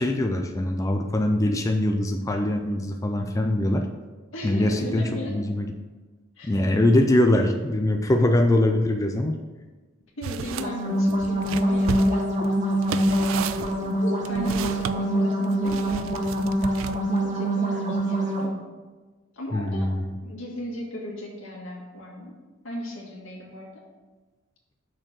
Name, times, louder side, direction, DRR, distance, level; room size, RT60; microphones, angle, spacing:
voice 1, 0.0-3.9 4.4-5.7 6.5-9.4 19.5-20.2, left 1 dB, 15° left, 4 dB, 0.4 m, -22 dB
voice 2, 4.3-5.3 6.4-6.6 10.2-12.3 13.1-16.0 17.1-18.5 19.3-19.9 20.2-22.4 22.6-23.8, left 1 dB, 75° left, -2 dB, 1.9 m, -36 dB
sound 1, 10.2-10.7 11.1-15.0 15.7-17.2, right 7 dB, 70° right, 0.3 m, -33 dB
sound 2, 10.5-18.5, right 1 dB, 40° right, 1.2 m, -24 dB
6.2 x 4.4 x 6.1 m, 1.3 s
head